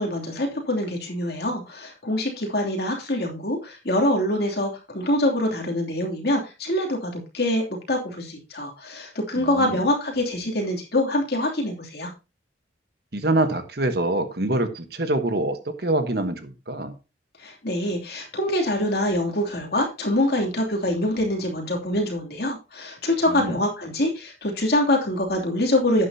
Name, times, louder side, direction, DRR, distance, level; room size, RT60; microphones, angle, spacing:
voice 1, 0.0-12.1 17.4-26.1, left 1 dB, 55° left, 0 dB, 2.9 m, -25 dB
voice 2, 9.4-9.8 13.1-16.9 23.3-23.6, right 2 dB, 55° right, 9 dB, 1.3 m, -25 dB
11.5 x 9.2 x 2.8 m, 0.28 s
head